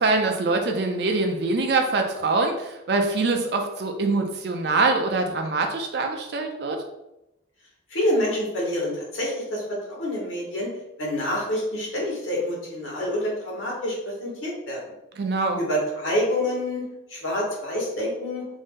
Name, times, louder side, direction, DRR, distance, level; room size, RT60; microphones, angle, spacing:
voice 1, 0.0-6.8 15.2-15.6, right 3 dB, 55° right, 4 dB, 0.4 m, -24 dB
voice 2, 7.9-10.7 11.0-14.9 15.6-18.5, left 1 dB, 80° left, -3 dB, 1.0 m, -27 dB
2.6 x 2.0 x 3.5 m, 0.89 s
head